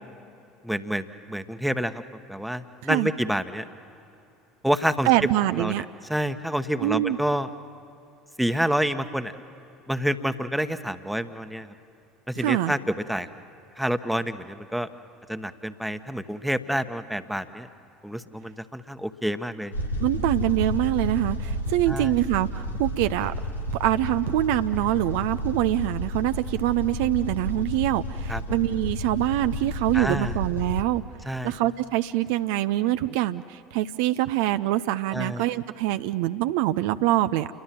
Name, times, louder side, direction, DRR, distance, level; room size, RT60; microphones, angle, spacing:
voice 1, 0.6-2.0 2.3-3.7 4.6-5.1 5.5-5.8 6.1-7.5 8.4-9.3 9.9-11.7 12.3-13.3 13.8-14.9 15.3-17.7 18.0-19.7 21.9-22.1 28.3-28.4 29.9-30.4 31.2-31.5 35.1-35.4, equal, ahead, 10 dB, 1.1 m, -28 dB
voice 2, 5.1-5.8 6.8-7.2 12.4-12.7 20.0-23.3 23.8-31.0 31.4-37.5, right 15 dB, 60° right, 11 dB, 0.5 m, -24 dB
sound 1, 19.7-30.8, left 1 dB, 90° left, 1.3 m, -31 dB
29.0 x 22.5 x 7.6 m, 2.7 s
figure-of-eight pair, 65°, 0 cm